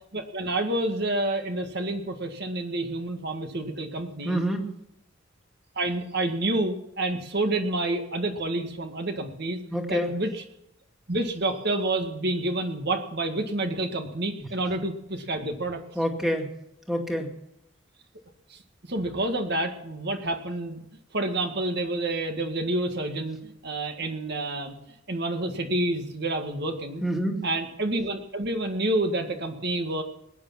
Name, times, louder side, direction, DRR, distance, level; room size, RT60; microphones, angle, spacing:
voice 1, 0.1-4.4 5.8-9.6 9.9-10.4 11.1-15.8 18.5-18.6 18.9-20.8 21.1-24.8 25.1-27.0 27.4-30.0, right 2 dB, 55° right, 5 dB, 1.8 m, -28 dB
voice 2, 4.2-4.7 9.7-10.1 16.0-16.5 16.9-17.3 27.0-27.4, equal, ahead, 2 dB, 2.2 m, -26 dB
20.5 x 9.6 x 5.9 m, 0.81 s
head